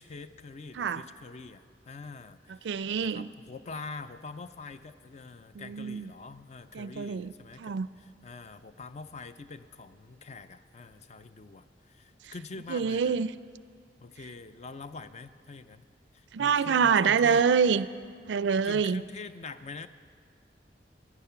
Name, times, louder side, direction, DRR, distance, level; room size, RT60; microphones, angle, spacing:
voice 1, 0.0-2.7 3.0-13.2 14.0-15.8 16.1-17.4 18.6-19.9, left 4 dB, 40° left, 12 dB, 0.4 m, -44 dB
voice 2, 2.6-3.3 5.5-6.1 6.7-7.3 7.6-7.9 12.7-13.3 16.3-17.9 18.3-19.0, right 6 dB, 75° right, 15 dB, 0.4 m, -26 dB
14.0 x 10.0 x 5.8 m, 2.1 s
head